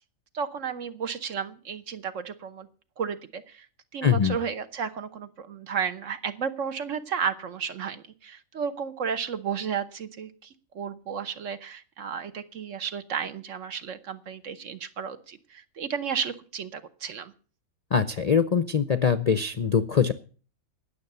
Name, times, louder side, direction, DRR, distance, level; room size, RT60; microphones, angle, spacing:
voice 1, 0.3-2.7 3.0-3.7 3.9-17.3, right 7 dB, 60° right, 11 dB, 1.2 m, -33 dB
voice 2, 4.0-4.4 17.9-20.1, left 6 dB, 50° left, 12 dB, 0.5 m, -23 dB
18.0 x 6.9 x 6.7 m, 0.40 s
omnidirectional pair, 1.5 m